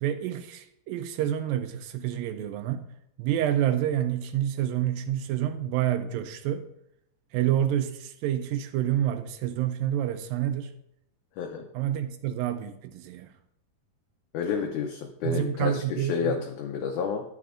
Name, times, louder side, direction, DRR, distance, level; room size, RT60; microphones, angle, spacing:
voice 1, 0.0-2.9 3.2-6.7 7.3-10.7 11.7-13.3 15.2-16.4, right 11 dB, 85° right, 2.3 m, -28 dB
voice 2, 14.3-17.2, left 6 dB, 75° left, 1.9 m, -30 dB
10.0 x 7.6 x 2.5 m
omnidirectional pair, 4.0 m